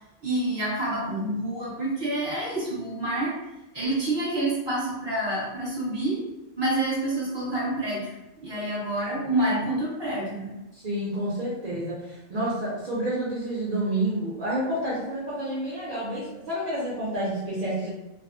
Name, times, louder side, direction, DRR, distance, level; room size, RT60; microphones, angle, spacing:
voice 1, 0.2-3.4 3.7-6.2 6.6-8.1 8.4-10.5, right 1 dB, 20° right, -7 dB, 0.9 m, -28 dB
voice 2, 10.7-17.9, right 1 dB, 55° right, -8 dB, 0.5 m, -29 dB
2.3 x 2.1 x 2.6 m, 0.99 s
omnidirectional pair, 1.4 m